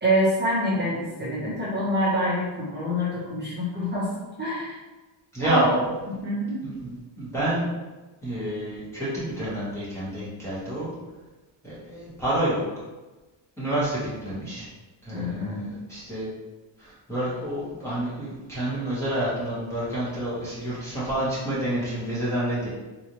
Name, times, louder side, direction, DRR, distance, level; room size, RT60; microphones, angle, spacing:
voice 1, 0.0-4.8 5.4-5.8 6.2-6.6 15.1-15.7, equal, 20° right, -10 dB, 1.2 m, -26 dB
voice 2, 5.3-5.7 6.6-7.6 8.2-10.9 11.6-12.6 13.6-14.7 15.0-16.3 16.8-22.7, right 1 dB, 5° left, -10 dB, 1.3 m, -28 dB
4.0 x 2.7 x 3.1 m, 1.2 s
cardioid pair, 150°, 49 cm